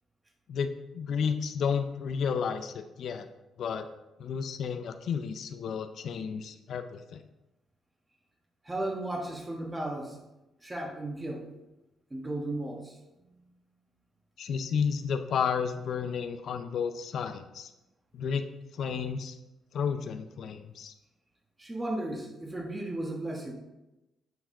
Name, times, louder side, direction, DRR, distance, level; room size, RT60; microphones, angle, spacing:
voice 1, 0.5-3.3 3.6-3.9 4.2-7.2 14.4-17.7 18.1-18.4 18.7-19.4 19.7-20.9, left 6 dB, 65° left, 8 dB, 0.5 m, -32 dB
voice 2, 8.6-10.2 10.6-11.5 12.1-13.0 21.6-23.5, right 1 dB, 15° right, 1 dB, 1.4 m, -35 dB
7.9 x 4.7 x 3.7 m, 0.98 s
cardioid pair, 90°, 0 cm